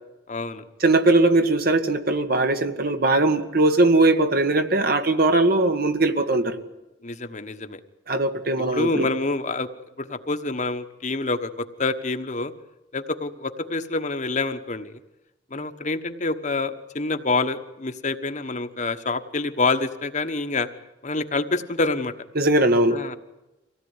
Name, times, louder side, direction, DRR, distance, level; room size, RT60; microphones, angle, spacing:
voice 1, 0.3-0.6 7.0-7.8 8.7-9.7 10.0-12.5 12.9-14.9 15.5-20.7 21.0-22.1 22.9-23.1, left 3 dB, 40° left, 7 dB, 1.3 m, -27 dB
voice 2, 0.8-6.6 8.1-9.1 22.4-23.0, right 2 dB, 55° right, 7 dB, 1.7 m, -20 dB
25.0 x 17.0 x 9.8 m, 0.99 s
head